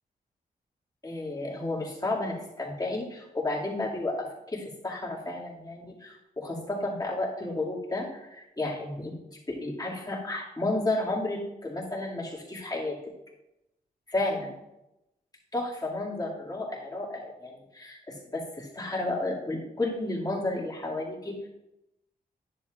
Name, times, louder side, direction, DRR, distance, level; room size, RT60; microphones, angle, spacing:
voice 1, 1.0-9.2 9.5-13.0 14.1-14.5 15.5-21.5, left 2 dB, 25° left, -4 dB, 2.3 m, -32 dB
10.5 x 7.4 x 2.5 m, 0.92 s
cardioid pair, 60°, 17 cm